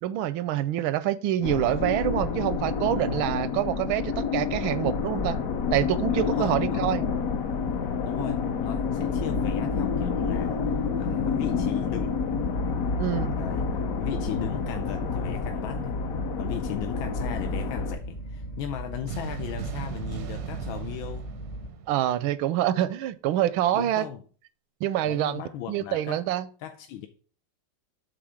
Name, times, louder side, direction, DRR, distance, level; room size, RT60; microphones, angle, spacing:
voice 1, 0.0-5.4 5.7-7.0 13.0-13.3 21.9-24.1 24.8-25.4 25.7-26.5, right 12 dB, 90° right, 1.4 m, -26 dB
sound 1, 1.4-18.0, left 5 dB, 60° left, 1.0 m, -29 dB
voice 2, 6.2-6.9 8.0-12.2 13.3-13.7 14.0-16.0 16.4-21.3 23.7-24.2 25.0-26.2 26.6-27.1, left 10 dB, 90° left, 1.5 m, -37 dB
sound 2, 9.0-21.7, right 1 dB, 40° left, 0.6 m, -38 dB
sound 3, 19.1-22.5, right 9 dB, 70° right, 0.8 m, -38 dB
8.6 x 3.8 x 6.2 m
omnidirectional pair, 2.2 m